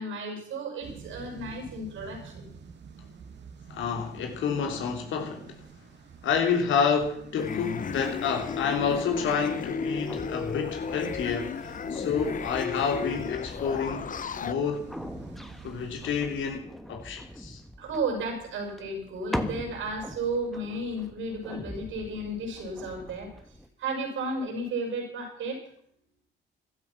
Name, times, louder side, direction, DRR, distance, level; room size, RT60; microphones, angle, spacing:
voice 1, 0.0-2.5 17.8-23.3 23.8-25.6, right 2 dB, 80° right, 2 dB, 7.2 m, -33 dB
sound 1, 0.8-16.6, right 6 dB, 60° right, 2.6 m, -48 dB
voice 2, 3.7-5.6 6.2-14.1 14.4-14.8 15.6-17.6, left 6 dB, 75° left, 4 dB, 3.3 m, -29 dB
sound 2, 7.4-14.5, left 6 dB, 40° left, 0.9 m, -34 dB
sound 3, 7.7-23.7, equal, ahead, 1.4 m, -42 dB
15.0 x 12.5 x 6.0 m, 0.65 s
cardioid pair, 90°, 20 cm